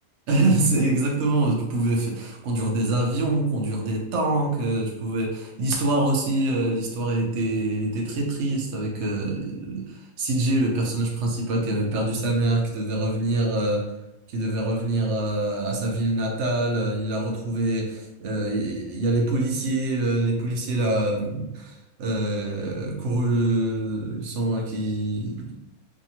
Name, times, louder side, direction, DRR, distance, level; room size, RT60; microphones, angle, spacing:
voice 1, 0.3-13.8 14.3-25.5, right 2 dB, 60° right, 0 dB, 0.8 m, -25 dB
2.6 x 2.5 x 2.8 m, 0.93 s
omnidirectional pair, 1.5 m